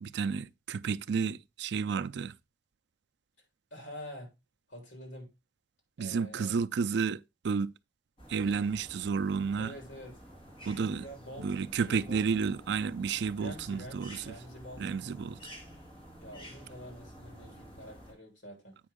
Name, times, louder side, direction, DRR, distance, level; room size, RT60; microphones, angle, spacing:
voice 1, 0.0-2.4 6.0-7.7 8.3-9.7 10.6-11.1 11.4-14.4 14.8-15.4, right 5 dB, 65° right, 0.4 m, -31 dB
voice 2, 3.7-4.3 4.7-5.3 6.0-6.6 9.6-10.2 10.7-12.5 13.4-15.0 16.2-18.8, equal, 80° left, 3.5 m, -47 dB
sound 1, 8.2-18.1, equal, 30° left, 2.2 m, -51 dB
8.6 x 5.3 x 3.5 m
head